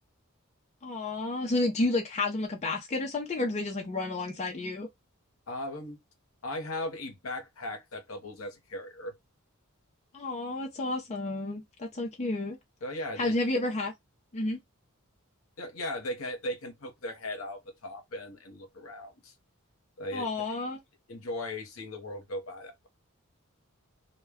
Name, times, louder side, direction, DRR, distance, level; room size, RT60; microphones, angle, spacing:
voice 1, 0.8-4.9 10.1-12.6 13.2-13.9 14.3-14.6 20.1-20.8, left 2 dB, 30° left, 0.5 m, -31 dB
voice 2, 5.5-6.0 6.4-9.1 12.8-13.3 15.6-19.3 20.0-20.6 21.1-22.9, left 1 dB, 70° left, 0.8 m, -38 dB
2.2 x 2.2 x 3.4 m
head